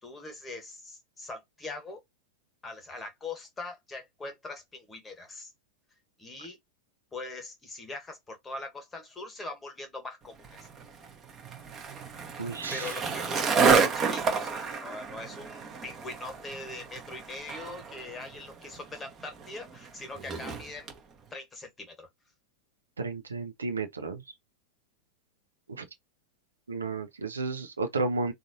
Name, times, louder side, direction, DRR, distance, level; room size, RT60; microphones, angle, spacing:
voice 1, 0.0-2.0 2.6-5.5 6.2-6.6 7.1-10.7 12.7-20.9 21.3-22.1, left 2 dB, 15° left, 1.2 m, -42 dB
Skateboard, 10.4-21.0, right 5 dB, 25° right, 0.9 m, -30 dB
voice 2, 12.4-12.9 23.0-24.2 25.8-25.9 26.7-28.3, right 3 dB, 75° right, 0.6 m, -32 dB
3.9 x 2.4 x 2.6 m
figure-of-eight pair, 90°, 0 cm